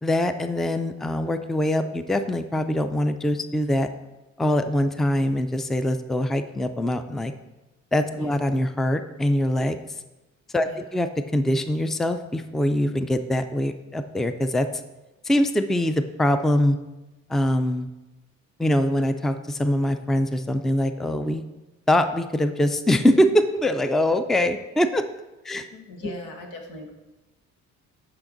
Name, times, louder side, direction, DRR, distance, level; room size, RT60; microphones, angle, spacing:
voice 1, 0.0-3.9 4.4-7.3 7.9-9.8 10.5-14.7 15.2-16.8 17.3-17.9 18.6-21.4 21.9-25.0 25.4-25.7 26.0-26.1, left 1 dB, ahead, 9 dB, 0.4 m, -23 dB
voice 2, 25.5-26.9, left 2 dB, 90° left, 3 dB, 1.4 m, -40 dB
8.6 x 5.8 x 3.9 m, 1.1 s
cardioid pair, 90°, 30 cm